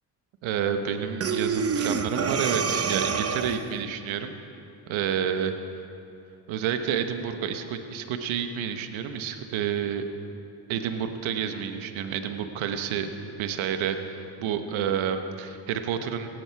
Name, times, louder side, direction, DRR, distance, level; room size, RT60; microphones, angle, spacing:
voice 1, 0.4-4.4 4.9-5.5 6.5-10.1 10.7-13.1 13.4-16.3, right 8 dB, 75° right, 7 dB, 1.3 m, -29 dB
Breathing, 1.2-3.8, right 5 dB, 30° right, 0.9 m, -27 dB
18.0 x 14.5 x 4.7 m, 2.7 s
supercardioid pair, 65°, 47 cm